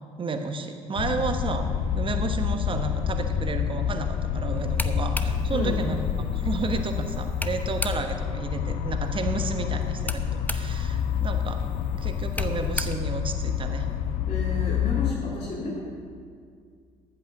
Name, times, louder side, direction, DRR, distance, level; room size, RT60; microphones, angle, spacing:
voice 1, 0.2-1.7 1.9-6.0 6.3-11.6 11.9-13.9, right 4 dB, 35° right, 7 dB, 1.2 m, -32 dB
sound 1, 1.0-15.1, left 8 dB, 60° left, 0.6 m, -28 dB
sound 2, 4.6-8.3 9.8-14.0, left 1 dB, 10° left, 0.7 m, -37 dB
voice 2, 14.3-15.8, left 2 dB, 40° left, -4 dB, 2.3 m, -31 dB
14.0 x 6.1 x 6.5 m, 2.1 s
figure-of-eight pair, 50°, 16 cm